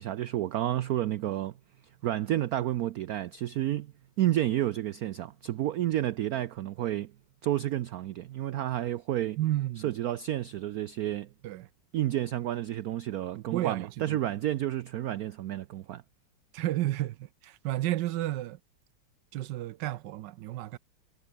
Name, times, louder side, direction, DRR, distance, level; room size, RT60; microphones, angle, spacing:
voice 1, 0.0-1.5 2.0-3.9 4.2-7.1 7.4-9.4 9.8-11.3 11.9-16.0, right 13 dB, 90° right, 0.8 m, -30 dB
voice 2, 9.4-10.0 11.4-11.7 13.3-14.2 16.5-18.6 19.3-20.8, right 15 dB, 70° right, 1.1 m, -32 dB
omnidirectional pair, 2.2 m